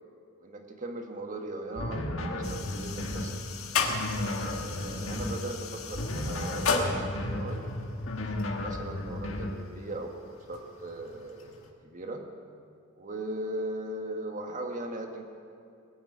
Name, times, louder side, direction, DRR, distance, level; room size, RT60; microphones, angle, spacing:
voice 1, 0.4-3.4 4.2-7.7 8.1-12.2 13.0-15.2, right 1 dB, 40° right, 3 dB, 1.5 m, -39 dB
sound 1, 1.8-3.3 3.8-5.4 5.9-7.5 8.0-9.6, left 1 dB, 65° left, 1.6 m, -34 dB
sound 2, 2.4-11.7, left 4 dB, 85° left, 1.7 m, -35 dB
20.0 x 7.3 x 9.5 m, 2.5 s
head